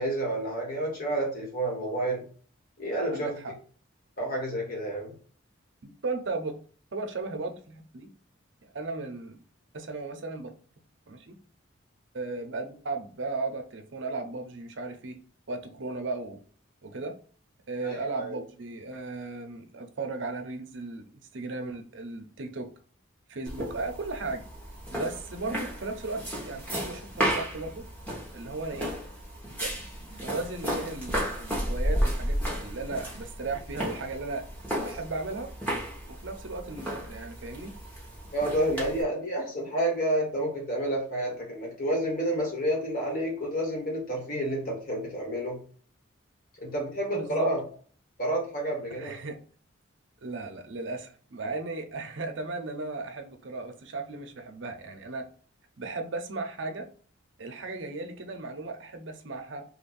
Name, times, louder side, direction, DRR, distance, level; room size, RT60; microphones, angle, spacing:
voice 1, 0.0-2.2 2.8-3.3 4.2-5.1 17.8-18.4 38.3-45.6 46.6-47.6 48.2-49.2, right 1 dB, 45° left, -1 dB, 1.4 m, -29 dB
voice 2, 3.1-3.5 5.8-6.6 6.9-8.1 8.6-9.4 9.7-10.5 11.1-11.3 12.1-15.2 15.5-16.4 16.8-17.1 17.7-21.1 21.3-22.7 23.3-24.4 24.9-27.8 28.3-28.9 29.6-34.4 34.7-35.5 36.1-37.8 47.1-47.5 48.9-49.4 50.2-55.3 55.8-56.9 57.4-59.6, right 3 dB, 65° right, 6 dB, 0.6 m, -36 dB
sound 1, 23.5-39.0, equal, 10° left, 1.0 m, -33 dB
3.0 x 2.6 x 3.9 m, 0.42 s
head